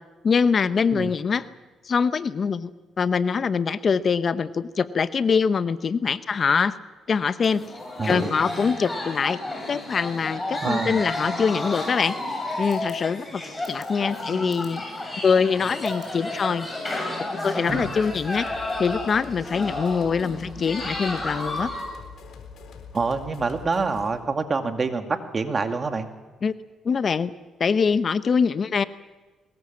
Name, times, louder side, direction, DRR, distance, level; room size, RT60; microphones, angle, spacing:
voice 1, 0.2-1.4 1.9-2.7 3.0-6.8 7.1-7.6 8.0-9.4 9.7-12.1 12.6-14.8 15.2-16.7 17.4-18.5 18.8-21.7 26.4-26.5 26.8-27.3 27.6-28.8, left 5 dB, 45° left, 13 dB, 0.8 m, -23 dB
sound 1, 7.4-21.8, left 2 dB, 15° left, 7.9 m, -32 dB
voice 2, 10.6-11.0 17.7-17.9 22.9-26.1, right 4 dB, 35° right, 6 dB, 2.4 m, -26 dB
sound 2, 17.7-24.2, left 5 dB, 70° left, 3.9 m, -43 dB
23.0 x 21.0 x 7.5 m, 1.3 s
cardioid pair, 90°, 0 cm